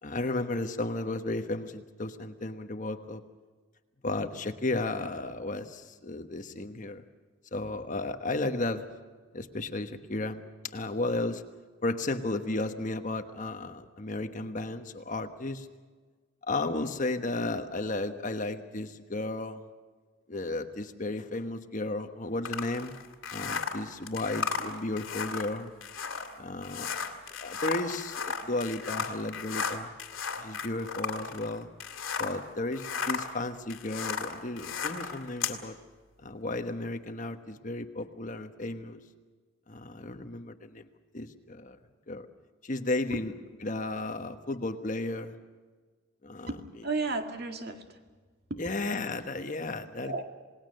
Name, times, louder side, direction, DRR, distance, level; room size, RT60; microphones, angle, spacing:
voice 1, 0.0-3.2 4.0-7.0 7.5-8.9 9.3-10.4 10.7-11.4 11.8-15.7 16.5-19.6 20.3-22.9 23.3-25.7 26.4-29.9 30.4-31.7 32.2-35.8 36.2-39.0 39.7-40.9 41.1-41.8 42.1-42.3 42.6-43.3 43.6-45.4 46.2-46.5 48.6-50.2, left 2 dB, 40° left, 7 dB, 1.2 m, -34 dB
sound 1, 22.4-32.4 32.7-35.6, left 5 dB, 80° left, 2.4 m, -35 dB
voice 2, 46.5-48.0 48.5-48.6 50.0-50.2, right 3 dB, 50° right, 4 dB, 2.1 m, -33 dB
28.0 x 19.5 x 6.6 m, 1.4 s
head